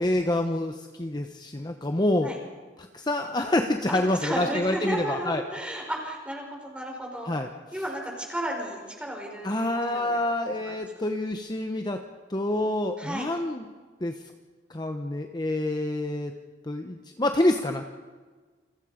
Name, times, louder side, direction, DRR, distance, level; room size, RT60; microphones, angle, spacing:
voice 1, 0.0-2.3 2.8-5.4 7.3-7.5 9.4-12.0 12.3-13.6 14.0-14.2 14.7-16.3 16.7-17.9, left 1 dB, 25° left, 5 dB, 1.0 m, -27 dB
voice 2, 3.9-7.3 7.7-10.9 13.0-13.3, right 1 dB, 5° right, 0 dB, 5.5 m, -33 dB
29.5 x 23.0 x 5.1 m, 1.5 s
head